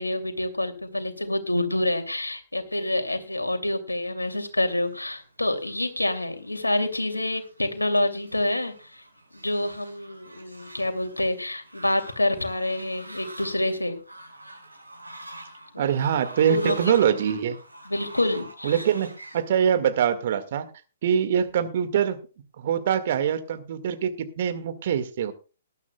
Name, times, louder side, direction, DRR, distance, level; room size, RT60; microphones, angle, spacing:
voice 1, 0.0-9.0 9.3-14.0 15.7-15.9 16.5-16.7 17.9-18.8, left 1 dB, 85° left, 7 dB, 2.6 m, -27 dB
Fowl, 4.6-19.5, right 1 dB, 85° right, 6.6 m, -46 dB
voice 2, 15.8-17.6 18.6-20.7 21.0-22.2 22.6-25.3, right 8 dB, 45° right, 10 dB, 1.8 m, -24 dB
19.5 x 12.0 x 2.3 m, 0.33 s
figure-of-eight pair, 125°, 0 cm